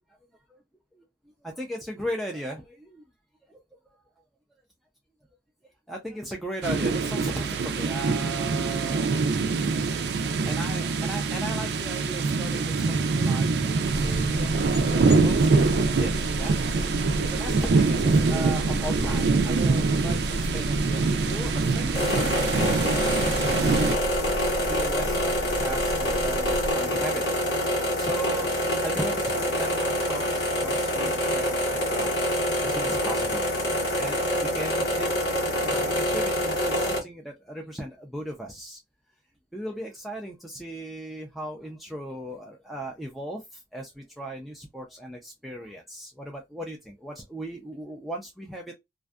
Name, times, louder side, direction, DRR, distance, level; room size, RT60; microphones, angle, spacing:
voice 1, 1.4-3.0 3.5-3.6 5.9-9.1 10.4-15.6 16.0-22.9 23.2-24.0 24.6-28.5 28.8-32.1 32.6-35.1 35.4-38.8 39.5-48.7, right 1 dB, ahead, 0.4 m, -37 dB
sound 1, 6.6-24.0, right 4 dB, 70° right, 0.4 m, -24 dB
sound 2, 13.8-26.7, equal, 45° left, 0.7 m, -33 dB
sound 3, 21.9-37.0, equal, 85° left, 1.2 m, -26 dB
2.5 x 2.3 x 2.2 m
head